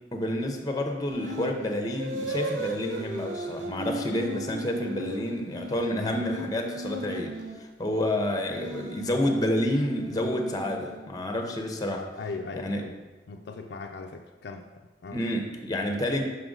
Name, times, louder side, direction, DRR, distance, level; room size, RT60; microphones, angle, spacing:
voice 1, 0.1-12.1 12.6-12.8 15.1-16.2, left 1 dB, 20° left, 4 dB, 0.6 m, -29 dB
sound 1, 1.1-1.6 1.9-7.6 8.3-11.3, right 1 dB, 90° right, 0.9 m, -37 dB
voice 2, 6.0-6.3 12.2-13.0 13.3-15.2, left 3 dB, 65° left, 4 dB, 0.4 m, -39 dB
6.1 x 5.7 x 3.8 m, 1.2 s
head